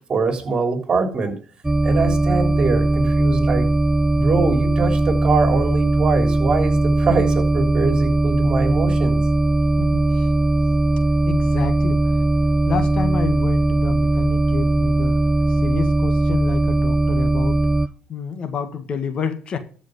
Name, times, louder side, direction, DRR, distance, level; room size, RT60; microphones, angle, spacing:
voice 1, 0.1-1.4 1.8-3.7 4.1-9.2, right 4 dB, 40° right, 5 dB, 3.5 m, -23 dB
sound 1, 1.6-17.9, right 2 dB, 15° right, 0.5 m, -19 dB
voice 2, 9.8-10.3 11.3-12.3 12.7-15.2 15.5-17.6 18.1-19.6, left 6 dB, 45° left, 9 dB, 1.6 m, -29 dB
13.5 x 5.2 x 6.5 m, 0.41 s
cardioid pair, 95°, 2 cm